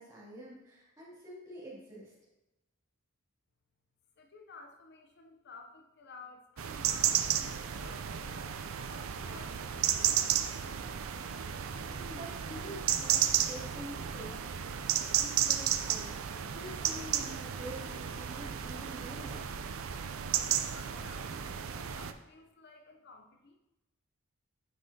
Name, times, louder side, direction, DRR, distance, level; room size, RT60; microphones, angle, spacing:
voice 1, 0.0-2.1 11.9-14.6 14.9-16.1 16.5-19.5, equal, 15° right, -7 dB, 2.7 m, -47 dB
voice 2, 4.2-8.4 8.9-10.6 20.7-23.6, left 4 dB, 55° left, 3 dB, 0.7 m, -54 dB
sound 1, 6.6-22.1, right 10 dB, 75° right, 0.5 m, -33 dB
9.3 x 5.3 x 2.8 m, 0.95 s
head